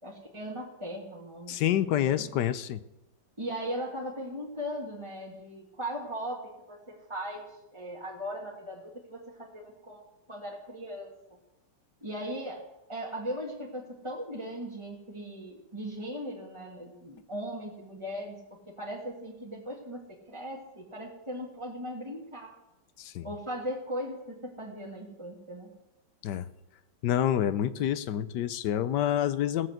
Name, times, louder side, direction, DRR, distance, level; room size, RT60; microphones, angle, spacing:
voice 1, 0.0-2.3 3.4-11.1 12.0-18.4 18.8-22.6 23.2-25.7, equal, 15° right, -5 dB, 1.8 m, -38 dB
voice 2, 1.5-2.8 23.0-23.3 26.2-26.5 27.0-29.7, left 11 dB, 70° left, 14 dB, 1.2 m, -28 dB
17.0 x 6.5 x 7.9 m, 0.93 s
omnidirectional pair, 2.1 m